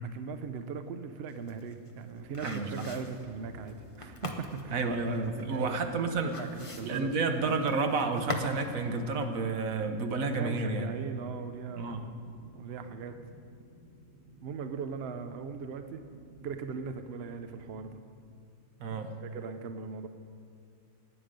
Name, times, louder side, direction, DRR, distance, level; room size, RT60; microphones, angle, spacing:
voice 1, 0.0-4.8 5.4-5.9 6.3-7.1 7.4-7.5 10.3-12.1 12.5-13.2 14.4-18.0 18.9-20.1, right 5 dB, 55° right, 8 dB, 0.9 m, -40 dB
sound 1, 1.3-8.7 9.0-9.1, left 2 dB, 25° left, 0.9 m, -42 dB
sound 2, 2.1-18.0, right 1 dB, 45° left, 5.0 m, -54 dB
voice 2, 2.4-2.8 4.7-6.4 6.8-10.9 11.8-12.1 18.8-19.1, right 3 dB, 80° right, 6 dB, 1.4 m, -30 dB
19.5 x 9.2 x 5.2 m, 2.3 s
omnidirectional pair, 1.4 m